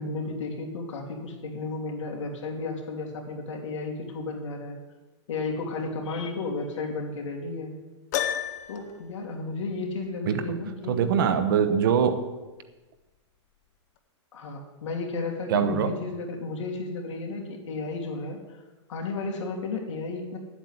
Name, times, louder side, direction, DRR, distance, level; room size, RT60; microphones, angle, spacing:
voice 1, 0.0-4.8 5.3-7.7 8.7-11.0 14.3-18.6 18.9-20.4, left 3 dB, 85° left, 1 dB, 3.0 m, -33 dB
Piano, 8.1-9.0, left 10 dB, 35° left, 0.8 m, -29 dB
voice 2, 10.3-10.6 10.9-12.3 15.5-15.9, right 7 dB, 50° right, 9 dB, 1.0 m, -23 dB
9.1 x 8.2 x 8.2 m, 1.2 s
supercardioid pair, 170°, 15 cm